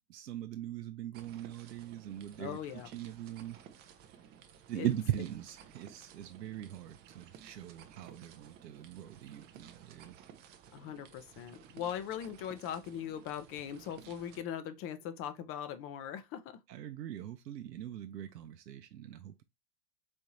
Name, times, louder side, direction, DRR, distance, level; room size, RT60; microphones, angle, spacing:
voice 1, 0.1-2.6 2.9-3.6 4.7-10.1 16.7-19.4, right 12 dB, 80° right, 0.6 m, -40 dB
sound 1, 1.1-14.4, right 9 dB, 20° right, 0.4 m, -56 dB
voice 2, 2.4-2.9 4.7-4.9 10.7-16.6, left 9 dB, 30° left, 0.6 m, -40 dB
4.3 x 3.6 x 2.8 m
hypercardioid pair, 95°, 49 cm